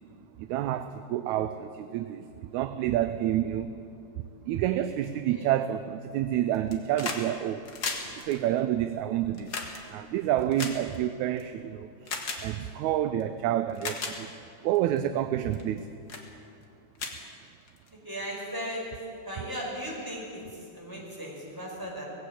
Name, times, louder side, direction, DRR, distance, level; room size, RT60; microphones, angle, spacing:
voice 1, 0.4-3.8 4.5-7.7 8.2-9.6 9.9-14.3 14.6-15.9, right 12 dB, 80° right, 1.9 m, -29 dB
sound 1, 6.5-7.2 7.5-11.4 12.0-12.4 13.2-13.3 13.7-14.1 14.7-15.0 15.5-15.8 16.1-16.3 16.6-16.7 16.9-17.9 19.0-19.1, left 4 dB, 40° left, 2.0 m, -36 dB
voice 2, 18.0-18.9 19.2-22.1, equal, 5° right, 5.1 m, -37 dB
19.5 x 16.0 x 8.4 m
omnidirectional pair, 3.5 m